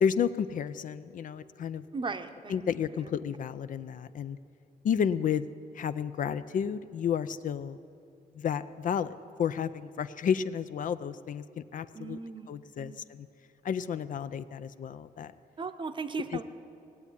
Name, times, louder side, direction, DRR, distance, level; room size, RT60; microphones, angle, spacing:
voice 1, 0.0-1.8 2.5-4.4 4.8-5.4 5.7-7.8 8.4-12.2 12.5-13.3 13.6-15.3 16.3-16.4, left 7 dB, 55° left, 13 dB, 0.5 m, -31 dB
voice 2, 1.9-2.6 3.0-3.1 11.9-12.5 12.8-13.0 15.6-16.4, right 4 dB, 30° right, 9 dB, 0.7 m, -37 dB
17.5 x 8.2 x 9.9 m, 2.6 s
cardioid pair, 130°, 16 cm